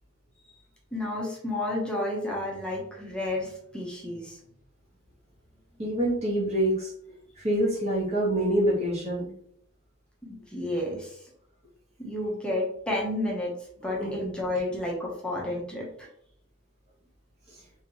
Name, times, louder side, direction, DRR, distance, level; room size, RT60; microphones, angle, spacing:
voice 1, 0.9-4.4 10.3-11.2 12.0-13.5 13.8-16.1, left 1 dB, 5° left, -3 dB, 0.7 m, -31 dB
voice 2, 5.8-6.9 7.4-9.3 14.0-14.1 17.5-17.6, right 1 dB, 30° right, -4 dB, 0.9 m, -26 dB
2.9 x 2.7 x 2.9 m, 0.68 s
head